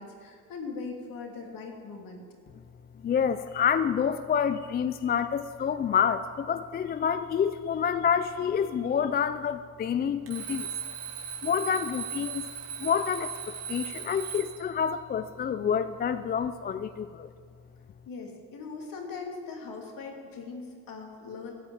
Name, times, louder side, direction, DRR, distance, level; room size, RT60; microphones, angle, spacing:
voice 1, 0.0-2.2 18.1-21.5, left 4 dB, 55° left, 1 dB, 2.7 m, -40 dB
voice 2, 3.0-10.7 11.4-12.4 12.8-17.3, left 7 dB, 25° left, 12 dB, 0.4 m, -28 dB
Alarm, 10.3-14.7, right 8 dB, 70° right, 2.4 m, -38 dB
13.5 x 5.3 x 9.2 m, 2.1 s
supercardioid pair, 80°, 40 cm